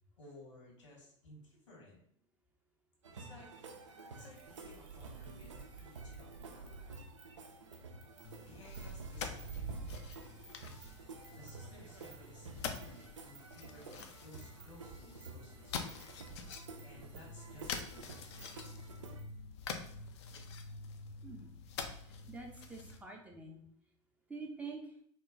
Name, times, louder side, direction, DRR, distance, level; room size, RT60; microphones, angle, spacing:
voice 1, 0.0-2.0 3.2-3.5 4.2-6.8 8.4-10.1 11.3-15.8 16.8-18.8, left 1 dB, 75° left, -3 dB, 1.4 m, -57 dB
sound 1, 3.0-19.2, right 4 dB, 75° right, 0.4 m, -50 dB
sound 2, 3.7-19.3, right 4 dB, 35° right, 0.9 m, -62 dB
sound 3, 8.2-23.0, left 5 dB, 60° left, 0.4 m, -46 dB
voice 2, 21.2-21.5 22.3-23.6 24.3-25.0, right 3 dB, 10° right, 0 dB, 0.5 m, -46 dB
3.0 x 2.2 x 3.7 m, 0.64 s
figure-of-eight pair, 75°, 16 cm